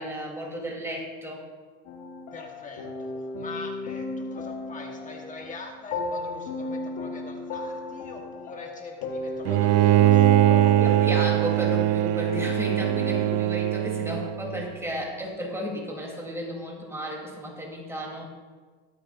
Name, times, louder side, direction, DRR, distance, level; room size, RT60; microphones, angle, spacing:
voice 1, 0.0-1.4 10.8-18.2, equal, 10° right, -2 dB, 3.5 m, -33 dB
sound 1, 1.9-13.4, left 3 dB, 75° left, 1.5 m, -35 dB
voice 2, 2.3-10.8 13.0-13.4, left 3 dB, 25° left, 0 dB, 1.5 m, -42 dB
Bowed string instrument, 9.5-14.7, right 14 dB, 55° right, 0.5 m, -21 dB
22.5 x 8.7 x 2.7 m, 1.5 s
supercardioid pair, 120°, 31 cm